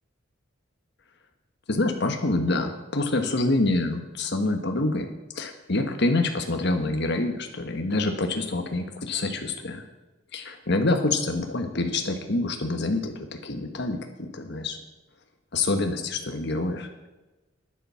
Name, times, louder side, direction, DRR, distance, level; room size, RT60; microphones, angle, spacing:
voice 1, 1.7-5.1 5.3-9.8 10.3-13.1 13.4-14.8 15.5-16.9, left 2 dB, 60° left, 5 dB, 1.4 m, -26 dB
10.0 x 10.0 x 7.0 m, 1.1 s
head